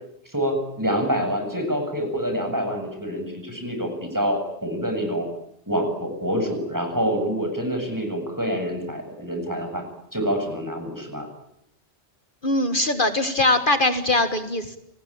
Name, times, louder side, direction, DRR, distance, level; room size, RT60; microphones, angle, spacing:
voice 1, 0.3-5.3 5.7-9.8 10.1-11.3, equal, 15° right, 5 dB, 7.7 m, -26 dB
voice 2, 12.4-14.8, left 2 dB, 50° left, 9 dB, 1.9 m, -21 dB
29.5 x 20.5 x 9.0 m, 0.79 s
omnidirectional pair, 1.1 m